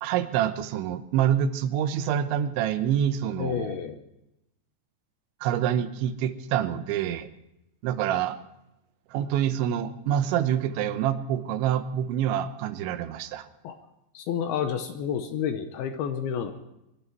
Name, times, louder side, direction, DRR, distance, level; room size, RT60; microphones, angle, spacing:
voice 1, 0.0-3.8 5.4-7.3 7.8-8.4 9.1-13.5, right 10 dB, 90° right, 11 dB, 3.2 m, -26 dB
voice 2, 3.4-4.0 13.6-13.8 14.1-16.5, left 8 dB, 75° left, 7 dB, 2.5 m, -30 dB
23.0 x 12.0 x 4.6 m, 0.88 s
omnidirectional pair, 5.2 m